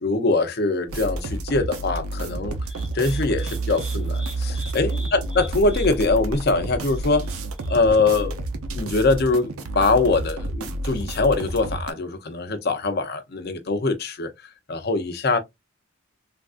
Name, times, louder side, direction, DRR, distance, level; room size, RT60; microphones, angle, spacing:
voice 1, 0.0-2.6 2.9-7.2 7.7-8.4 8.8-14.3 14.7-15.4, left 3 dB, 50° left, 0.6 m, -23 dB
sound 1, 0.9-11.9, right 2 dB, 80° right, 0.6 m, -30 dB
sound 2, 2.6-8.0, equal, 5° right, 0.9 m, -38 dB
3.4 x 2.4 x 2.4 m
head